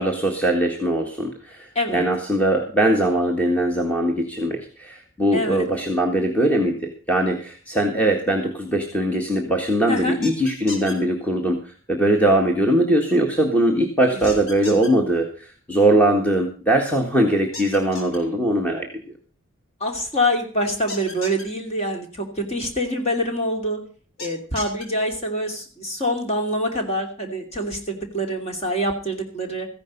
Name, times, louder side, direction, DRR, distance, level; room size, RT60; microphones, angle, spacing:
voice 1, 0.0-1.7 1.9-18.9, right 1 dB, 5° left, 1 dB, 1.7 m, -21 dB
voice 2, 5.3-5.6 9.9-10.2 14.0-14.3 14.6-14.7 19.8-23.8 24.2-29.7, equal, 30° left, 3 dB, 2.8 m, -25 dB
sound 1, 10.2-10.9 14.2-14.9 17.5-18.2 20.9-21.4 24.2-24.8, left 2 dB, 75° left, 3.6 m, -35 dB
14.5 x 10.5 x 5.3 m, 0.39 s
head